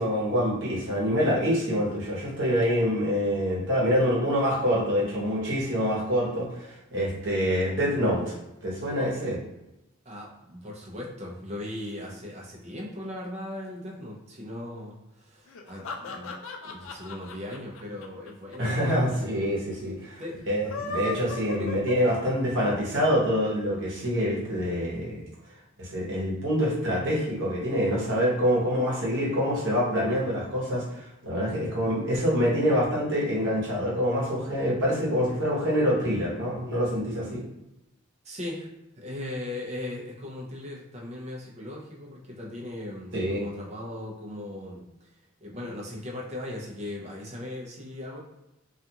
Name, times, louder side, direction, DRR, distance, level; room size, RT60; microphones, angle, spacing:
voice 1, 0.0-8.3 8.6-9.4 18.6-20.2 20.5-25.2 25.8-37.4 43.1-43.5, equal, 60° right, -5 dB, 1.0 m, -26 dB
voice 2, 10.0-16.4 16.6-19.1 20.2-20.4 21.6-21.7 38.2-38.7 39.0-45.1 45.4-48.2, left 1 dB, 30° right, -3 dB, 0.6 m, -38 dB
sound 1, 15.5-18.8 19.1-19.2 19.4-19.5 20.5-22.6, left 2 dB, 70° left, 0.3 m, -36 dB
2.4 x 2.4 x 2.8 m, 0.91 s
head